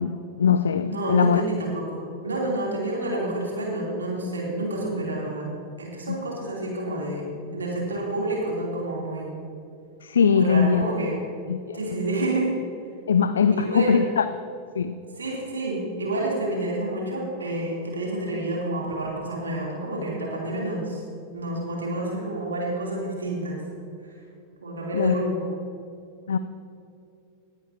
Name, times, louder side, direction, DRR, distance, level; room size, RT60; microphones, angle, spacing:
voice 1, 0.0-1.4 6.1-6.2 10.0-10.8 11.5-12.0 13.1-14.3 14.8-15.0 24.9-25.1 26.3-26.4, left 6 dB, 65° left, 12 dB, 0.3 m, -21 dB
voice 2, 0.8-5.5 5.8-7.3 7.5-9.3 10.3-11.2 11.7-12.5 13.5-14.0 15.2-21.0 21.3-23.6 24.6-25.5, right 1 dB, 70° right, -3 dB, 2.8 m, -29 dB
18.5 x 9.7 x 2.7 m, 2.5 s
figure-of-eight pair, 90°, 0 cm